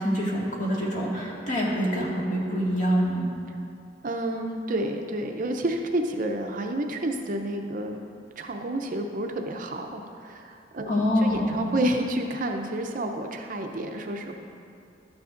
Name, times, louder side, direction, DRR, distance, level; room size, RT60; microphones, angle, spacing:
voice 1, 0.0-3.3 10.9-11.7, equal, 45° left, -5 dB, 1.9 m, -25 dB
voice 2, 4.0-8.1 8.4-14.3, right 1 dB, 45° right, 3 dB, 0.6 m, -30 dB
12.0 x 9.4 x 2.6 m, 2.4 s
head